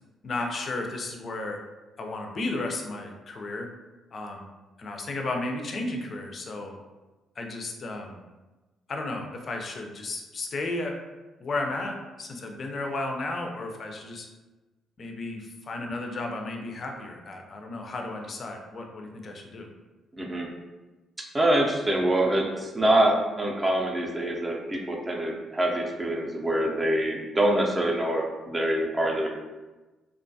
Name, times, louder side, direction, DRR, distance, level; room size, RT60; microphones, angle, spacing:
voice 1, 0.2-1.6 2.0-3.7 4.1-4.4 4.8-6.8 7.4-8.2 8.9-11.0 11.4-14.3 15.0-19.7, left 2 dB, 45° left, 2 dB, 0.4 m, -33 dB
voice 2, 20.2-20.5 21.2-29.3, right 1 dB, 20° right, 0 dB, 0.5 m, -25 dB
2.4 x 2.2 x 2.6 m, 1.1 s
cardioid pair, 90°, 0 cm